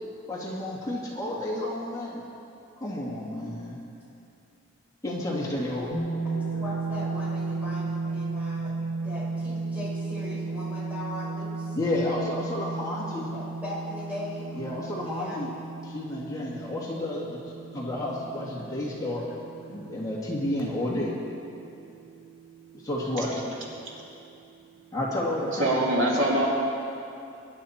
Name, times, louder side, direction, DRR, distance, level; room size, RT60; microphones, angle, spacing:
voice 1, 0.3-2.2 2.8-3.8 5.0-5.9 11.7-13.3 14.5-15.5 15.8-17.4 17.7-19.3 19.7-21.1 22.8-23.4 24.9-25.8, left 1 dB, 15° left, -5 dB, 2.1 m, -31 dB
sound 1, 5.9-21.9, right 3 dB, 65° left, 1.6 m, -34 dB
voice 2, 6.2-8.7 9.0-11.8 13.3-14.5 15.0-15.4, left 1 dB, 10° right, -7 dB, 4.0 m, -39 dB
voice 3, 25.5-26.5, right 1 dB, 80° right, -4 dB, 2.9 m, -24 dB
23.0 x 11.5 x 4.3 m, 2.7 s
head